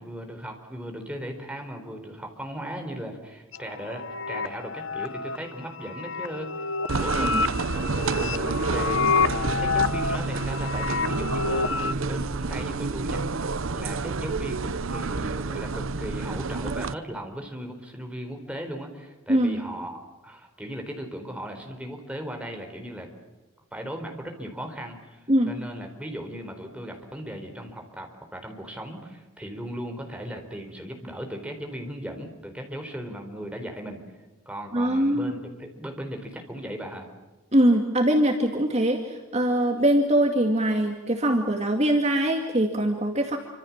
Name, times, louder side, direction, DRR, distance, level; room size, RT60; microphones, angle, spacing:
voice 1, 0.0-6.5 7.0-7.3 7.7-13.5 13.7-23.1 23.7-34.0 34.5-37.1, equal, 5° right, 3 dB, 4.2 m, -37 dB
sound 1, 3.5-11.9, left 5 dB, 65° left, 1.1 m, -28 dB
sound 2, 6.9-16.9, right 3 dB, 65° right, 0.8 m, -29 dB
voice 2, 19.3-19.6 25.3-25.5 34.7-35.4 37.5-43.4, right 1 dB, 30° right, 3 dB, 2.2 m, -22 dB
27.5 x 26.0 x 7.4 m, 1.1 s
head